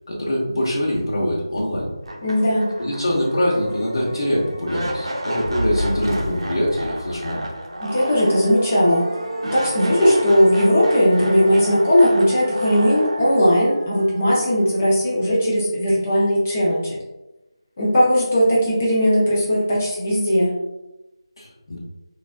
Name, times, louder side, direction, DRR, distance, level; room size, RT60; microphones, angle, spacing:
voice 1, 0.1-1.9 2.8-7.4 21.4-21.8, equal, 50° left, -5 dB, 1.0 m, -23 dB
sound 1, 1.6-1.7 2.0-15.1, right 1 dB, 85° right, 0.8 m, -31 dB
voice 2, 2.2-2.7 7.8-9.1 9.4-17.0 17.8-20.5, equal, 20° left, -7 dB, 0.8 m, -18 dB
Fire, 5.3-7.8, equal, 50° right, 0.5 m, -29 dB
3.7 x 2.4 x 2.2 m, 0.97 s
figure-of-eight pair, 175°, 3 cm